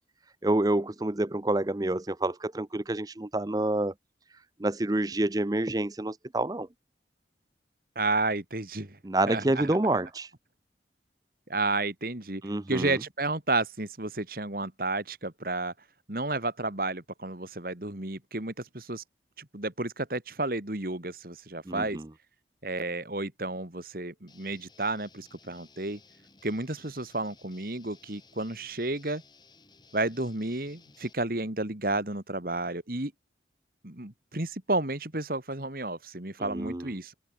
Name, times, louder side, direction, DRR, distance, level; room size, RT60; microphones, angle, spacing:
voice 1, 0.4-3.9 4.3-6.7 9.0-10.3 12.4-13.0 21.7-22.1 36.4-36.9, right 2 dB, 20° right, 0.6 m, -28 dB
voice 2, 8.0-9.0 9.3-9.7 11.5-12.4 12.7-15.7 16.1-19.0 19.4-22.0 22.6-26.0 26.4-29.2 29.9-33.1 33.8-37.1, right 2 dB, 50° right, 2.4 m, -31 dB
Guitar, 24.3-31.1, left 4 dB, 25° left, 7.5 m, -58 dB
open air
head